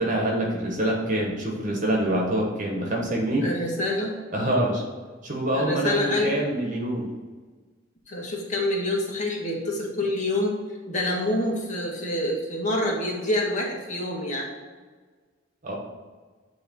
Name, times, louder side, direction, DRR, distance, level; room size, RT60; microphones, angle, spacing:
voice 1, 0.0-3.5 4.3-4.8 5.2-7.1 15.6-15.7, right 1 dB, 40° right, -1 dB, 1.2 m, -25 dB
voice 2, 3.4-4.7 5.5-6.4 8.1-10.6 10.9-14.5, left 1 dB, 40° left, -2 dB, 1.6 m, -27 dB
9.0 x 3.2 x 5.3 m, 1.4 s
head